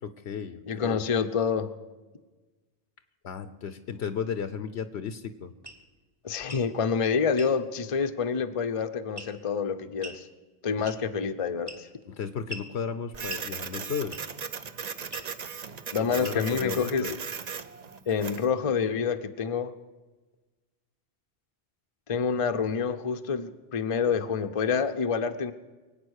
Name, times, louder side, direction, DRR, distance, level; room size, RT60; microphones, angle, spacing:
voice 1, 0.0-1.0 3.2-5.5 12.1-14.3 16.1-17.1 17.5-17.6, left 7 dB, 75° left, 11 dB, 1.0 m, -34 dB
voice 2, 0.7-1.7 6.2-10.3 10.6-11.9 15.9-17.1 18.1-19.7 22.1-25.5, left 6 dB, 35° left, 8 dB, 0.7 m, -27 dB
sound 1, 5.6-5.8 6.4-6.7 7.4-7.5 9.2-9.5 10.0-10.2 10.8-11.2 11.7-12.0 12.5-12.7 13.3-13.5 14.1-14.4 15.1-15.3 16.2-16.6, right 1 dB, 20° right, 1.2 m, -42 dB
Printer, 13.1-18.5, right 6 dB, 45° right, 0.7 m, -38 dB
23.0 x 9.0 x 6.4 m, 1.2 s
omnidirectional pair, 1.1 m